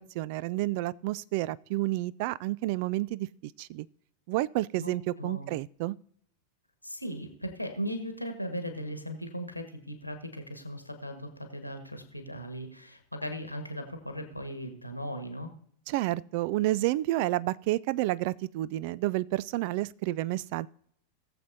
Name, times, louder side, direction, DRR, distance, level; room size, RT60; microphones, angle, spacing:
voice 1, 0.0-3.9 4.3-6.0 15.9-20.7, right 17 dB, 45° right, 0.3 m, -30 dB
voice 2, 4.8-5.5 6.8-15.5, equal, 90° left, 1.5 m, -38 dB
19.0 x 7.5 x 2.7 m
figure-of-eight pair, 90°, 0 cm